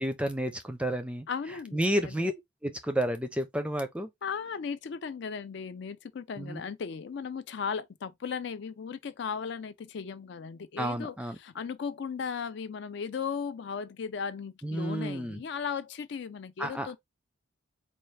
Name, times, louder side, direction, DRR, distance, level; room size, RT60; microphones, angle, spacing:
voice 1, 0.0-1.3 1.7-2.3 2.6-4.1 6.4-6.6 10.8-11.4 14.6-15.4 16.6-17.0, right 1 dB, 5° right, 0.5 m, -31 dB
voice 2, 1.3-2.3 4.2-17.0, left 6 dB, 60° left, 0.4 m, -36 dB
4.4 x 2.3 x 3.2 m
head